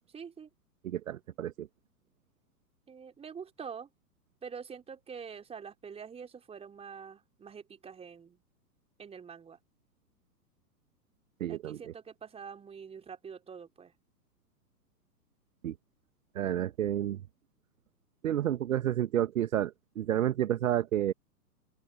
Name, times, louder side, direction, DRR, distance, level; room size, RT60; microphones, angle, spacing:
voice 1, 0.1-0.5 2.9-3.9 4.4-8.4 9.0-9.6 11.5-13.9, right 6 dB, 10° right, 4.1 m, -45 dB
voice 2, 0.8-1.7 11.4-11.9 15.6-15.7 16.3-17.2 18.2-21.1, right 11 dB, 55° right, 1.2 m, -30 dB
open air
figure-of-eight pair, 115°, 49 cm